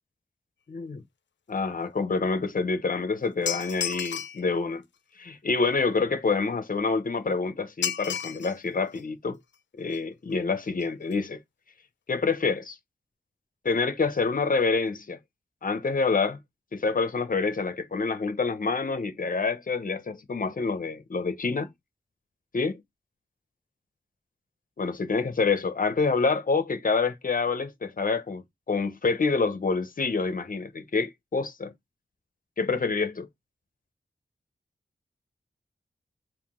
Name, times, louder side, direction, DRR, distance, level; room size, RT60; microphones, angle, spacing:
voice 1, 0.7-1.0 1.5-4.8 5.2-9.4 9.8-11.4 12.1-12.8 13.6-15.2 15.6-16.4 16.7-21.7 22.5-22.8 24.8-28.4 28.7-31.7 32.6-33.3, left 4 dB, 50° left, 0.7 m, -27 dB
sound 1, 3.5-4.4 7.8-8.6 8.9-9.0 9.9-10.0 10.3-10.4 10.7-10.8 11.1-11.2, left 8 dB, 85° left, 0.4 m, -32 dB
3.6 x 2.5 x 3.6 m
wide cardioid pair, 65°, 18 cm